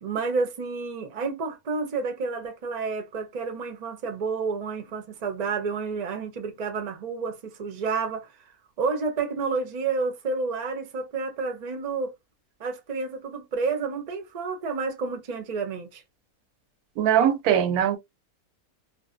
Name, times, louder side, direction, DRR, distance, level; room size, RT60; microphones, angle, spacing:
voice 1, 0.0-8.3 8.8-12.1 12.6-16.0, right 4 dB, 50° right, 0.5 m, -30 dB
voice 2, 17.0-18.0, right 9 dB, 85° right, 1.1 m, -21 dB
2.5 x 2.1 x 2.5 m
omnidirectional pair, 1.5 m